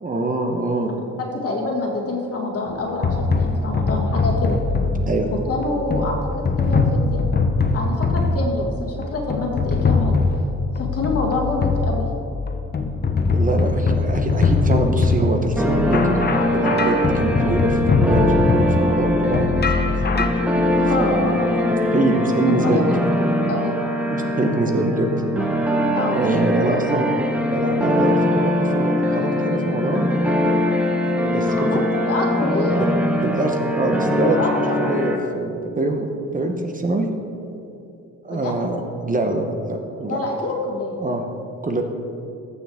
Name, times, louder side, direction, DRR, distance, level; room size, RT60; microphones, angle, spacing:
voice 1, 0.0-0.9 5.1-5.3 13.3-16.2 16.5-20.5 21.0-21.3 21.9-22.9 24.1-25.1 26.1-27.1 27.5-30.1 31.2-31.7 33.2-37.1 38.2-40.2 41.0-41.2 41.6-41.8, right 2 dB, 25° right, 4 dB, 0.9 m, -24 dB
voice 2, 1.2-4.6 5.3-6.3 6.6-7.3 7.7-10.2 10.8-12.1 20.7-22.1 22.6-22.9 23.5-23.8 25.9-26.2 31.4-32.9 34.4-34.6 38.3-38.5 40.1-41.0, left 2 dB, 50° left, 0 dB, 2.0 m, -26 dB
sound 1, 2.7-20.3, left 3 dB, 35° left, 0.9 m, -22 dB
sound 2, 15.6-35.2, left 1 dB, 5° right, 1.2 m, -21 dB
13.5 x 6.9 x 3.6 m, 2.7 s
cardioid pair, 90°, 30 cm